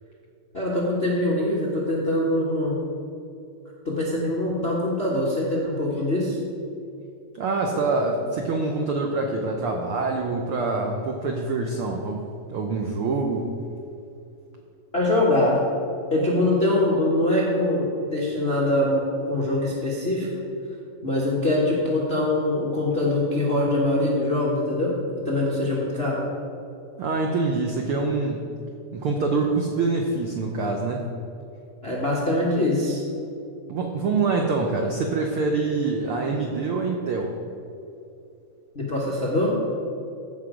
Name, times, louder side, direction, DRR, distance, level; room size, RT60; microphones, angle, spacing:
voice 1, 0.5-2.8 3.8-6.4 14.9-15.6 16.1-20.3 21.0-24.9 25.2-26.2 31.8-33.0 38.7-39.5, left 1 dB, 50° left, -5 dB, 0.7 m, -23 dB
voice 2, 7.3-12.2 12.5-13.5 27.0-28.4 28.9-31.0 33.7-37.4, right 3 dB, 85° right, 2 dB, 1.2 m, -25 dB
15.0 x 6.0 x 5.0 m, 2.7 s
omnidirectional pair, 3.6 m